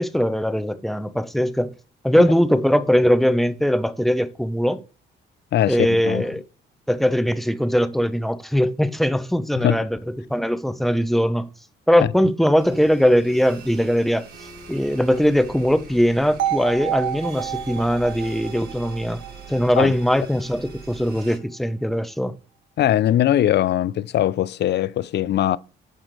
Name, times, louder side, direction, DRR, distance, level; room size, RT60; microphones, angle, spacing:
voice 1, 0.0-1.7 2.0-4.8 5.7-6.4 6.9-11.5 11.9-14.3 14.7-19.2 19.5-22.3, equal, ahead, 0.7 m, -20 dB
voice 2, 5.5-6.3 9.6-9.8 19.8-19.9 22.8-25.6, left 12 dB, 60° left, 0.5 m, -21 dB
sound 1, 12.6-21.4, right 3 dB, 50° right, 2.9 m, -42 dB
sound 2, 16.4-20.4, right 11 dB, 70° right, 0.9 m, -30 dB
7.5 x 5.0 x 4.7 m
cardioid pair, 90°, 20 cm